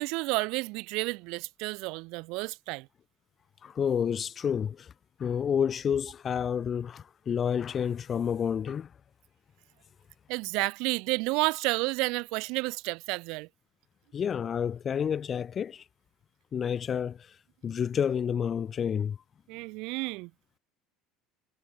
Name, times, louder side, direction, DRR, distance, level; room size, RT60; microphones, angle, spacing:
voice 1, 0.0-2.9 10.3-13.5 19.5-20.3, right 26 dB, 70° right, 0.5 m, -31 dB
voice 2, 3.6-4.9 5.2-8.9 14.1-15.8 16.5-17.4 17.6-19.2, left 8 dB, 30° left, 0.5 m, -29 dB
cardioid pair, 135°, 0 cm